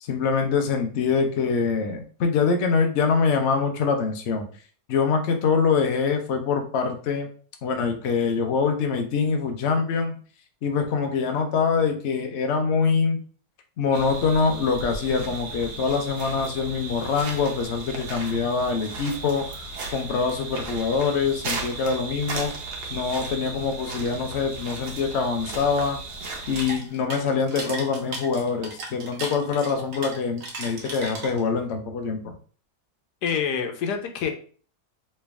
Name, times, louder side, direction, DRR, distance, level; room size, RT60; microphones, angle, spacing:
voice 1, 0.0-4.5 4.9-7.3 7.6-10.1 10.6-13.2 13.8-19.6 19.9-22.5 22.9-26.0 26.5-32.3, left 5 dB, 55° left, 4 dB, 0.8 m, -24 dB
sound 1, 13.9-26.8, right 3 dB, 80° right, 1.4 m, -35 dB
sound 2, 26.3-31.6, right 2 dB, 60° right, 1.2 m, -36 dB
voice 2, 33.2-34.3, left 7 dB, 85° left, 4 dB, 1.3 m, -26 dB
3.3 x 3.1 x 3.4 m, 0.42 s
omnidirectional pair, 1.7 m